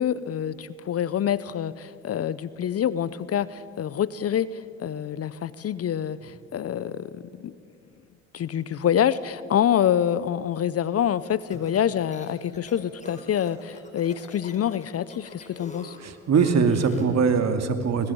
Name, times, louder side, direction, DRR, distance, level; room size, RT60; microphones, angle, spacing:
voice 1, 0.0-7.5 8.3-16.0, left 9 dB, 40° left, 17 dB, 0.8 m, -26 dB
sound 1, 11.3-17.2, left 2 dB, 20° left, 4.6 m, -46 dB
voice 2, 16.0-18.1, right 5 dB, 40° right, 8 dB, 2.5 m, -22 dB
25.0 x 20.0 x 7.1 m, 2.5 s
hypercardioid pair, 70°, 38 cm